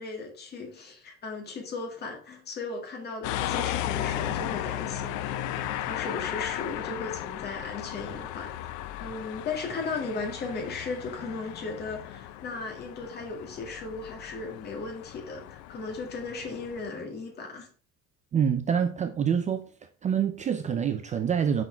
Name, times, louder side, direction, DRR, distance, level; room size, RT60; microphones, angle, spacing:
voice 1, 0.0-17.7, left 4 dB, 35° left, 2.0 m, -36 dB
sound 1, 3.2-16.9, left 12 dB, 85° left, 0.6 m, -35 dB
voice 2, 18.3-19.7 20.0-21.6, right 7 dB, 25° right, 0.4 m, -26 dB
6.3 x 5.7 x 4.5 m
cardioid pair, 165°, 29 cm